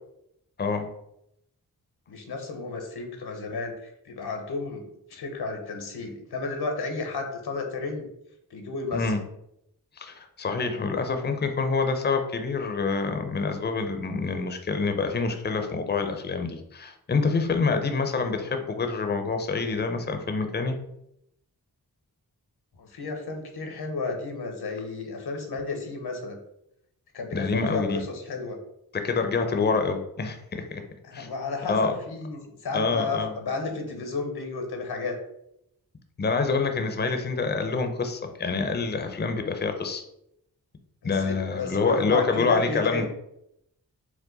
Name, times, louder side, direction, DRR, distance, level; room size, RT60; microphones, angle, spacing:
voice 1, 0.6-0.9 8.9-9.2 10.0-20.8 27.3-28.0 28.9-30.8 31.1-31.3 31.7-31.9 32.7-33.3 36.2-40.0 41.0-43.1, left 4 dB, 25° left, 6 dB, 0.5 m, -26 dB
voice 2, 2.1-8.1 8.5-9.1 22.8-26.4 27.1-28.6 31.0-35.2 41.0-43.1, left 3 dB, 85° left, 4 dB, 0.9 m, -32 dB
4.6 x 2.2 x 3.9 m, 0.78 s
cardioid pair, 65°, 38 cm